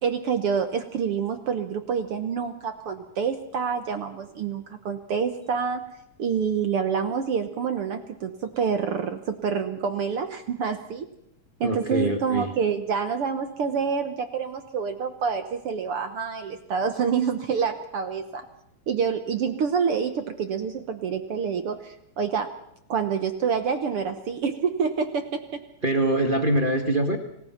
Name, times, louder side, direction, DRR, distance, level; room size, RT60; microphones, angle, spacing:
voice 1, 0.0-5.8 6.2-11.1 11.6-18.5 18.9-22.5 22.9-25.6, right 6 dB, 60° right, 9 dB, 1.6 m, -27 dB
voice 2, 11.6-12.5 25.8-27.2, right 1 dB, 25° right, 6 dB, 1.3 m, -23 dB
27.5 x 17.5 x 5.9 m, 0.77 s
omnidirectional pair, 3.9 m